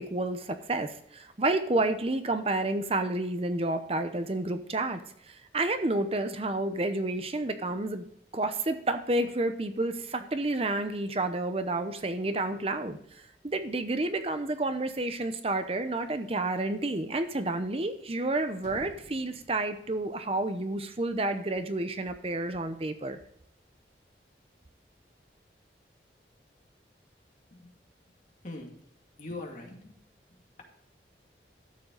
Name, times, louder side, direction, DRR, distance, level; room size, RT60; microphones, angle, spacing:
voice 1, 0.0-5.0 5.3-8.0 8.3-13.0 13.4-23.2, right 2 dB, 35° right, 9 dB, 0.8 m, -30 dB
sound 1, 18.6-20.5, equal, 80° left, 2.9 m, -51 dB
voice 2, 28.4-28.9 29.2-30.0 30.3-30.6, left 2 dB, 45° left, 1 dB, 2.3 m, -42 dB
12.5 x 7.6 x 3.9 m, 0.71 s
head